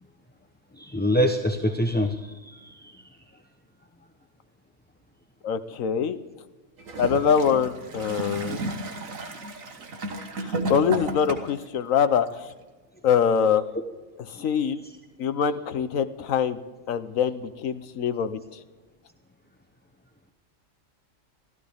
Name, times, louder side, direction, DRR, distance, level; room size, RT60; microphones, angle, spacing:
voice 1, 0.8-2.9 14.3-14.5, equal, 10° left, 4 dB, 0.7 m, -25 dB
voice 2, 5.4-6.2 7.0-8.6 10.4-12.3 13.0-13.6 14.4-14.8 15.2-16.6 16.9-18.4, left 7 dB, 75° left, 11 dB, 1.3 m, -24 dB
Gurgling / Toilet flush, 6.8-11.7 12.5-12.6, right 2 dB, 75° right, 1.9 m, -33 dB
24.5 x 15.5 x 3.6 m, 1.2 s
omnidirectional pair, 1.4 m